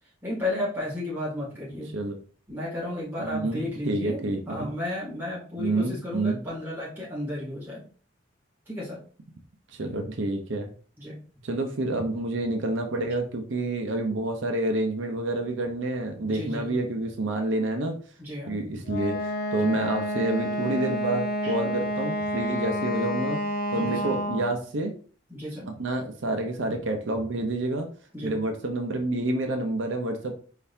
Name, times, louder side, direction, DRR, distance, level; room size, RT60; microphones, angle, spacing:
voice 1, 0.2-1.9 2.5-7.8 8.7-9.0 11.0-11.2 16.2-16.8 18.2-18.6 19.5-19.7 21.4-21.5 23.7-24.2 25.3-25.7 28.1-28.4, left 1 dB, 10° right, -6 dB, 2.3 m, -33 dB
voice 2, 3.2-4.7 5.6-6.4 9.7-10.7 11.4-17.9 18.5-23.4 23.7-24.9 25.8-27.9 28.2-30.4, right 2 dB, 80° right, 4 dB, 0.7 m, -28 dB
Wind instrument woodwind instrument, 18.9-24.6, equal, 45° left, 0.5 m, -29 dB
4.6 x 3.8 x 2.7 m, 0.41 s
head